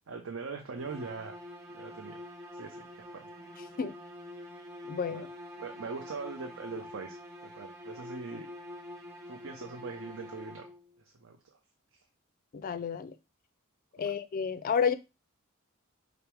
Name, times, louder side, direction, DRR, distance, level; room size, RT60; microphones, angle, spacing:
voice 1, 0.1-1.4 1.7-2.2 2.5-3.3 5.1-5.3 5.6-7.2 7.4-8.5 9.3-10.7 11.2-11.6 14.0-14.1, right 4 dB, 65° right, 3 dB, 0.6 m, -42 dB
sound 1, 0.8-11.0, left 1 dB, 15° right, 1.0 m, -46 dB
voice 2, 4.9-5.3 12.5-13.1 14.0-14.9, left 6 dB, 40° left, 12 dB, 0.4 m, -30 dB
5.1 x 2.1 x 4.4 m, 0.26 s
head